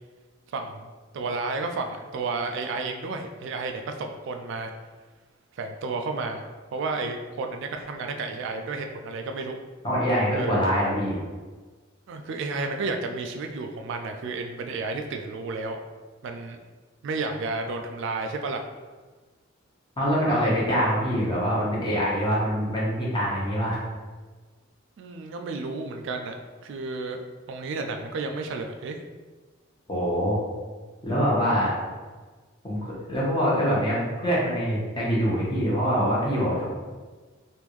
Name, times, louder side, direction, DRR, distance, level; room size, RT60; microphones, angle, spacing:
voice 1, 0.5-0.9 1.1-4.7 5.5-6.4 6.7-9.6 10.4-10.7 12.1-15.8 16.2-16.6 17.0-18.6 25.0-26.4 26.6-27.2 27.5-29.0, right 3 dB, 60° right, 5 dB, 0.3 m, -32 dB
voice 2, 9.8-11.2 20.0-23.8 29.9-30.4 31.0-31.7 32.6-36.6, equal, 25° left, -7 dB, 1.0 m, -24 dB
3.5 x 2.5 x 3.0 m, 1.4 s
head